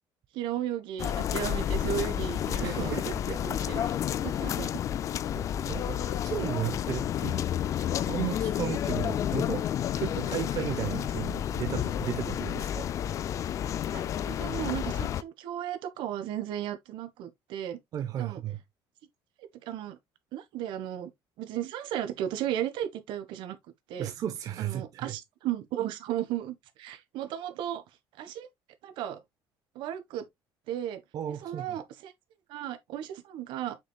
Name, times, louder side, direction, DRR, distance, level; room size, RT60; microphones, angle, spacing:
voice 1, 0.3-3.0 3.3-3.9 4.2-4.8 13.9-17.8 18.2-18.4 19.7-20.0 20.3-21.1 21.4-23.6 23.9-24.1 24.6-27.8 28.2-28.5 28.8-29.2 29.7-30.2 30.7-31.0 31.4-32.1 32.5-33.8, right 11 dB, 65° right, 1.4 m, -35 dB
sound 1, 1.0-15.2, left 10 dB, 35° left, 0.4 m, -30 dB
voice 2, 2.6-3.4 3.7-4.1 5.3-7.4 8.1-9.7 10.0-12.9 17.9-18.6 24.0-25.1 31.1-31.8, right 10 dB, 45° right, 0.9 m, -35 dB
7.4 x 6.2 x 2.3 m
cardioid pair, 165°, 9 cm